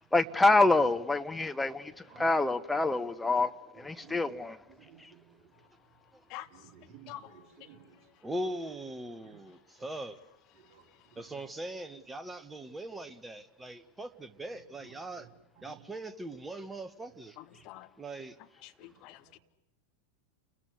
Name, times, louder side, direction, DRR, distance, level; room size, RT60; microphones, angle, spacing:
voice 1, 0.1-3.5 3.8-4.6, left 2 dB, 5° left, 1.0 m, -26 dB
voice 2, 3.8-4.3 4.7-5.5 6.5-8.0 9.2-9.4 10.6-10.8 11.1-11.2 14.8-15.3 15.6-15.8 18.8-19.0, right 8 dB, 35° right, 4.8 m, -56 dB
voice 3, 6.3-6.7 7.1-7.8 17.4-17.9 18.6-19.4, left 15 dB, 40° left, 1.4 m, -48 dB
voice 4, 8.2-10.2 11.2-15.3 15.6-17.4 18.0-18.4, right 1 dB, 10° right, 1.5 m, -40 dB
29.5 x 21.5 x 8.1 m
figure-of-eight pair, 90°, 0 cm